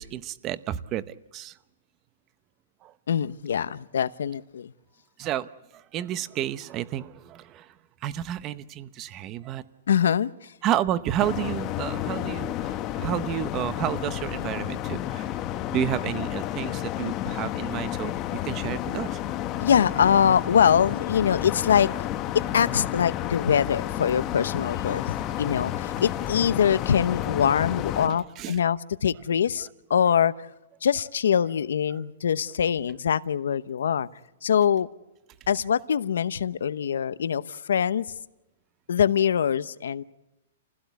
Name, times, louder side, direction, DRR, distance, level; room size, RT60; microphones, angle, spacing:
voice 1, 0.0-1.5 2.8-2.9 5.2-7.7 8.0-9.6 10.6-15.3 15.7-19.2 28.1-28.6, right 12 dB, 25° right, 0.8 m, -31 dB
voice 2, 3.1-4.7 9.9-10.5 19.6-21.9 22.3-30.3 30.8-34.1 34.4-34.9 35.5-38.1 38.9-40.0, left 8 dB, 85° left, 0.9 m, -23 dB
sound 1, 11.2-28.1, left 12 dB, 25° left, 1.0 m, -31 dB
28.5 x 16.5 x 8.3 m
hypercardioid pair, 160°, 0 cm